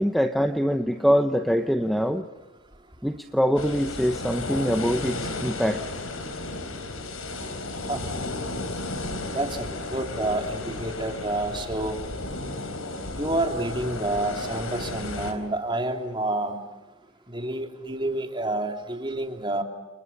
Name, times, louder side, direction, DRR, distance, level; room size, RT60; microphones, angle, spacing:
voice 1, 0.0-2.2 3.0-5.8, equal, ahead, 7 dB, 0.9 m, -24 dB
sound 1, 3.6-15.3, left 2 dB, 80° left, 4.2 m, -33 dB
voice 2, 9.3-12.0 13.2-16.6 17.3-19.6, right 1 dB, 20° right, 4 dB, 3.0 m, -29 dB
29.5 x 28.5 x 5.5 m, 1.2 s
head